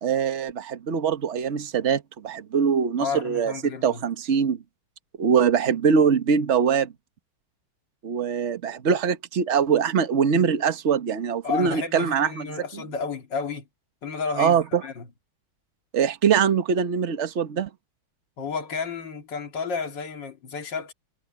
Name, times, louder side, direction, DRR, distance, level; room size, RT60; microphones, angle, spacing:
voice 1, 0.0-4.6 5.2-6.9 8.0-12.8 14.4-14.8 15.9-17.7, right 6 dB, 40° right, 1.4 m, -23 dB
voice 2, 3.0-4.0 11.4-13.6 14.0-15.1 18.4-20.9, left 5 dB, 60° left, 2.8 m, -32 dB
omnidirectional pair, 2.2 m